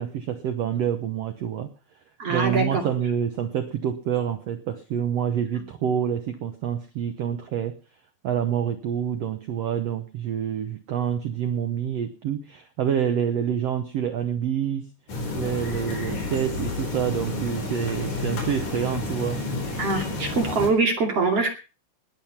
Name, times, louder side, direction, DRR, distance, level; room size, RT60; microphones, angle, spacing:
voice 1, 0.0-1.7 2.3-7.8 8.2-14.9 15.3-19.4, right 9 dB, 80° right, 10 dB, 1.4 m, -27 dB
voice 2, 2.2-2.8 19.8-21.5, right 3 dB, 45° right, 3 dB, 3.3 m, -23 dB
sound 1, 15.1-20.7, left 3 dB, 55° left, 5.4 m, -30 dB
20.0 x 8.2 x 5.7 m, 0.34 s
omnidirectional pair, 4.2 m